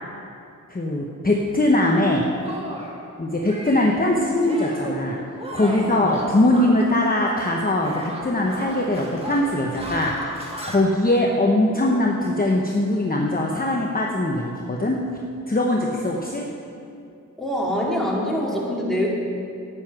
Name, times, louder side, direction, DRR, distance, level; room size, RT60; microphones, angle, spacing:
voice 1, 0.7-2.3 3.2-15.0 15.5-16.5, left 1 dB, 30° left, -1 dB, 1.0 m, -21 dB
Shatter, 1.7-1.9 2.4-3.0 3.4-4.0 4.4-5.0 5.4-7.6 7.8-10.8, right 1 dB, 20° right, 1.9 m, -35 dB
voice 2, 5.6-6.0 17.4-19.1, equal, ahead, -4 dB, 2.5 m, -25 dB
9.7 x 9.5 x 6.0 m, 2.5 s
wide cardioid pair, 65°, 31 cm